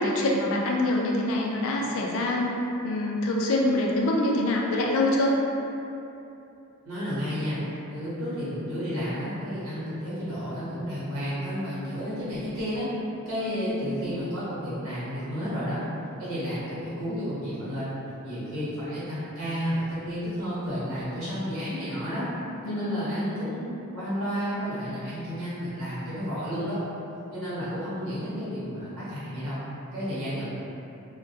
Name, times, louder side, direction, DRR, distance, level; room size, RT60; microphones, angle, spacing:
voice 1, 0.0-2.5 2.8-5.3 13.5-13.8 22.6-23.1, left 1 dB, 65° left, -1 dB, 0.3 m, -25 dB
voice 2, 6.8-7.6 7.9-12.9 13.2-15.8 16.2-17.9 18.2-22.2 22.6-26.8 27.3-29.6 29.9-30.5, equal, 85° right, -11 dB, 0.9 m, -31 dB
2.1 x 2.1 x 2.7 m, 2.8 s
head